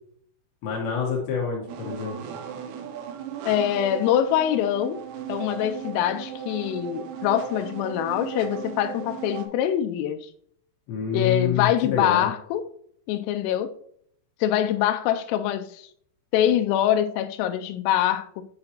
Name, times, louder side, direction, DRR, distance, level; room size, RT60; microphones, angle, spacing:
voice 1, 0.6-2.2 10.9-12.3, left 7 dB, 70° left, 3.3 m, -27 dB
sound 1, 1.7-9.5, right 8 dB, 90° right, 3.4 m, -36 dB
voice 2, 3.5-5.0 5.3-10.3 11.1-12.7 13.1-13.7 14.4-15.8 16.3-18.4, left 11 dB, 90° left, 3.2 m, -24 dB
8.7 x 5.7 x 2.9 m
omnidirectional pair, 5.8 m